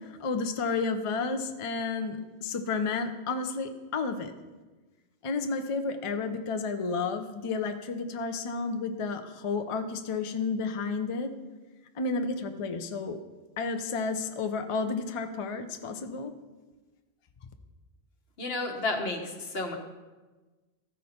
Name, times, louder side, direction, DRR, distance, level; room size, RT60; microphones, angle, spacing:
voice 1, 0.1-4.3 5.2-11.3 12.0-13.2 13.6-16.3, left 4 dB, 40° left, 8 dB, 0.5 m, -31 dB
voice 2, 18.4-19.8, left 2 dB, 65° left, 2 dB, 1.3 m, -31 dB
14.0 x 5.3 x 4.3 m, 1.2 s
omnidirectional pair, 1.1 m